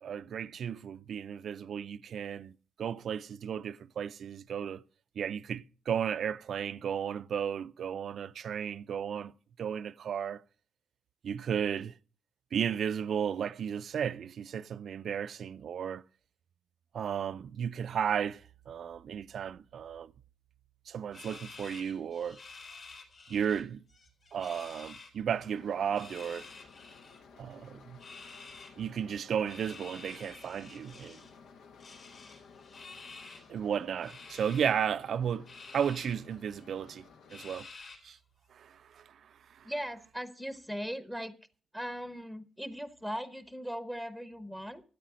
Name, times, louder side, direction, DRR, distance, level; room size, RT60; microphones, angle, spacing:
voice 1, 0.0-2.5 2.8-4.8 5.2-9.3 9.6-10.4 11.2-12.0 12.5-16.0 16.9-20.1 20.9-22.4 23.3-23.8 24.3-26.5 27.4-28.0 28.8-31.2 33.5-35.5 35.7-37.0 37.3-37.7 38.0-38.2 38.5-39.7, right 8 dB, 60° right, 0.5 m, -34 dB
sound 1, 21.1-23.6 23.9-25.1 25.8-27.2 28.0-28.7 29.5-31.3 31.8-33.5 34.0-34.7 35.5-36.2 36.6-36.7 37.3-38.2, left 4 dB, 50° left, 3.7 m, -50 dB
sound 2, 25.3-37.5, left 5 dB, 85° left, 1.3 m, -56 dB
voice 2, 39.6-41.3 41.7-44.8, equal, 5° left, 0.9 m, -39 dB
13.0 x 8.4 x 6.3 m
cardioid pair, 130°, 0 cm